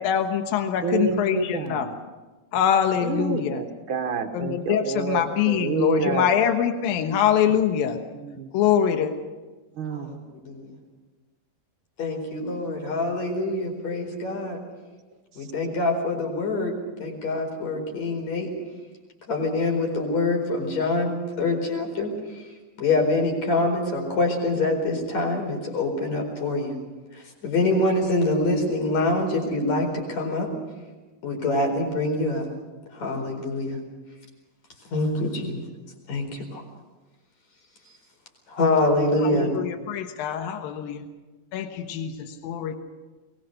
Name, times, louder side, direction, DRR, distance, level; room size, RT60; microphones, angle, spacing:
voice 1, 0.0-1.9 2.5-3.6 4.3-8.0 8.5-9.1 39.2-41.0 41.5-42.8, left 9 dB, 80° left, 6 dB, 3.0 m, -24 dB
voice 2, 0.8-2.0 3.0-6.3 8.1-8.5 9.8-10.2 12.4-12.5, right 6 dB, 60° right, 6 dB, 1.3 m, -29 dB
voice 3, 12.0-14.6 15.4-18.5 19.3-22.1 22.8-26.8 27.1-30.5 31.2-32.5 32.9-33.8 34.9-35.6 36.1-36.6 38.5-39.5, left 2 dB, 50° left, 2 dB, 5.7 m, -25 dB
22.5 x 21.0 x 6.6 m, 1.2 s
omnidirectional pair, 4.2 m